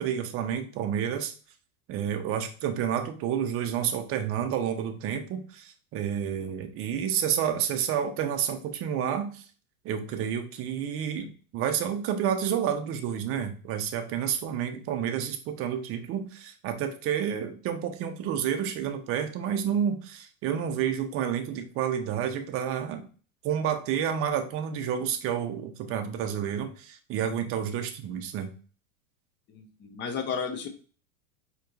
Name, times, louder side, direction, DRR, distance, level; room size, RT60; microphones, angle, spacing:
voice 1, 0.0-1.3 1.9-9.4 9.8-23.0 23.4-28.5, right 8 dB, 30° right, 5 dB, 0.6 m, -30 dB
voice 2, 29.5-30.7, left 6 dB, 25° left, 6 dB, 0.7 m, -33 dB
4.3 x 3.0 x 2.5 m, 0.39 s
hypercardioid pair, 115°, 44 cm